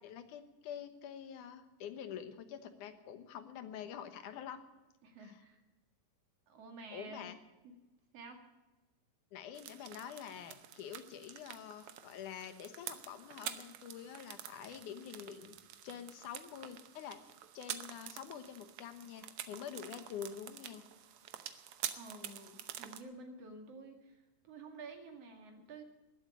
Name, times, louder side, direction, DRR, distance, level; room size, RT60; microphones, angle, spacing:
voice 1, 0.0-4.6 5.2-5.4 6.9-7.4 9.3-15.6 15.8-17.2 17.5-20.9, left 8 dB, 80° left, 9 dB, 2.7 m, -47 dB
voice 2, 5.0-5.6 6.5-7.3 7.6-7.7 8.1-8.4 22.0-25.8, right 3 dB, 55° right, 4 dB, 3.0 m, -51 dB
sound 1, 9.5-23.0, right 10 dB, 70° right, 1.4 m, -48 dB
20.0 x 8.1 x 8.2 m, 1.1 s
omnidirectional pair, 3.6 m